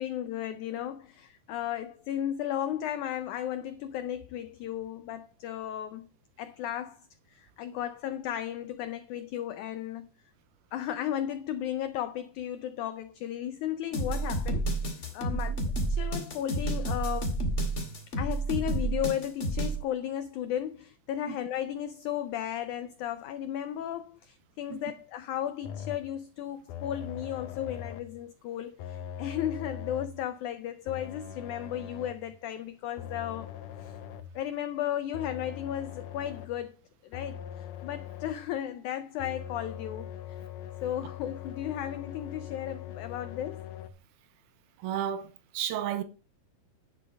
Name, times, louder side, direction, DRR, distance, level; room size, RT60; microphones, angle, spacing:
voice 1, 0.0-6.1 6.4-10.1 10.7-15.5 15.9-17.4 18.2-33.5 33.8-33.9 34.3-36.8 37.0-37.4 37.8-40.4 40.8-43.6, left 11 dB, 85° left, 1.7 m, -35 dB
sound 1, 13.9-19.8, right 2 dB, 30° left, 1.5 m, -30 dB
sound 2, 25.6-26.2 26.7-28.2 28.8-30.3 30.9-32.3 33.0-34.4 35.1-36.7 37.1-38.5 39.2-43.9, left 9 dB, 70° left, 2.1 m, -41 dB
voice 2, 44.8-46.0, right 10 dB, 85° right, 2.7 m, -32 dB
10.5 x 6.6 x 5.3 m
omnidirectional pair, 4.3 m